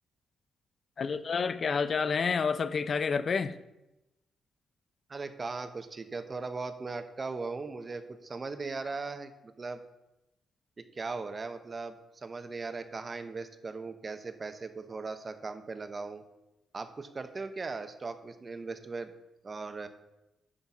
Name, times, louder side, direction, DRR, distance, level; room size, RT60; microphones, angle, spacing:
voice 1, 1.0-3.6, left 5 dB, 45° left, 14 dB, 0.5 m, -29 dB
voice 2, 5.1-9.8 10.8-16.2 16.7-19.1 19.4-19.9, right 4 dB, 30° right, 9 dB, 0.7 m, -38 dB
9.7 x 4.1 x 5.9 m, 0.95 s
cardioid pair, 125°, 0 cm